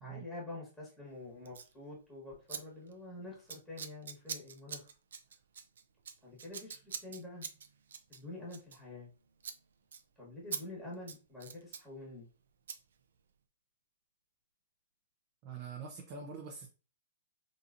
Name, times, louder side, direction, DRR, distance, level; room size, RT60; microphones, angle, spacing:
voice 1, 0.0-4.9 6.2-7.5 8.1-9.1 10.2-12.3, left 2 dB, ahead, 1.3 m, -47 dB
Scissors, 1.5-1.7 2.5-2.6 2.9-3.1 3.5-9.1 9.4-9.6 9.9-10.0 10.5-10.6 10.9-11.9 12.7-12.8, right 7 dB, 80° right, 0.4 m, -44 dB
voice 2, 15.4-16.7, right 5 dB, 35° right, 0.6 m, -44 dB
3.8 x 2.7 x 2.5 m
hypercardioid pair, 155°, 0 cm